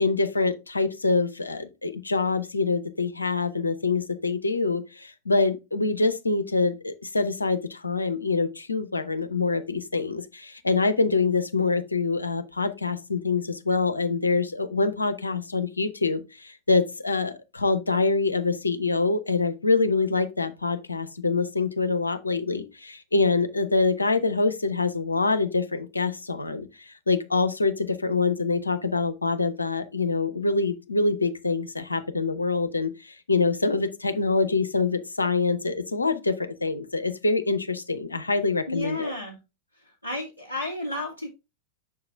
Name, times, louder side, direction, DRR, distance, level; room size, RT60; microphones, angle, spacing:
voice 1, 0.0-39.1, left 3 dB, 80° left, 0.7 m, -25 dB
voice 2, 38.7-39.4 39.7-41.3, left 1 dB, 85° right, 1.1 m, -32 dB
6.8 x 4.8 x 3.4 m
figure-of-eight pair, 90°, 0 cm